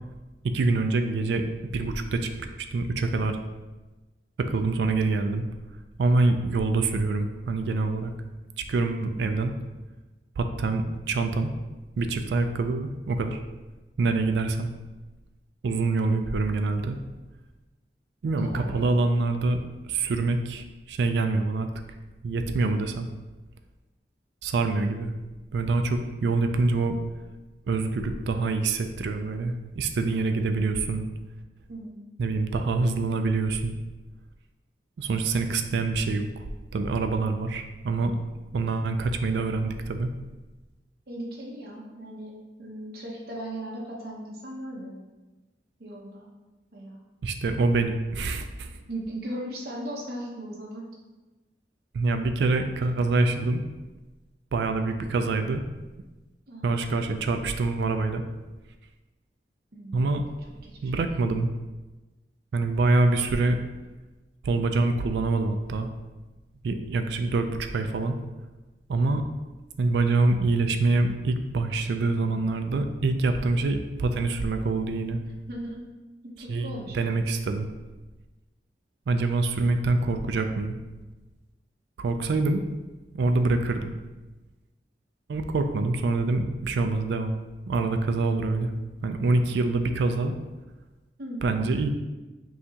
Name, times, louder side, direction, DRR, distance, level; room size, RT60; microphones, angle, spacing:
voice 1, 0.5-1.4 1.7-2.3 2.7-3.4 4.4-5.4 6.0-8.1 8.6-9.5 10.4-11.5 12.0-13.4 14.0-14.7 15.6-17.0 18.2-19.6 19.9-21.7 22.2-23.1 24.4-25.1 25.5-27.0 27.7-31.1 32.2-33.8 35.0-36.4 36.7-38.1 38.5-40.1 47.2-48.8 51.9-53.6 54.5-55.6 56.6-58.2 59.9-60.2 60.8-61.5 62.5-63.6 64.4-65.9 66.6-68.2 68.9-69.2 69.8-75.2 76.5-77.7 79.1-80.8 82.0-82.8 83.1-84.0 85.3-87.3 87.7-88.7 89.0-90.3 91.4-91.9, right 3 dB, 75° right, 7 dB, 0.3 m, -25 dB
voice 2, 18.4-19.0 31.7-32.0 41.1-42.3 42.6-45.0 45.8-46.3 46.7-47.0 48.9-50.8 56.5-56.8 59.7-60.1 60.6-61.0 75.3-75.8 76.2-77.2 91.2-91.5, right 1 dB, 60° right, -3 dB, 0.9 m, -38 dB
5.4 x 2.8 x 2.8 m, 1.2 s
head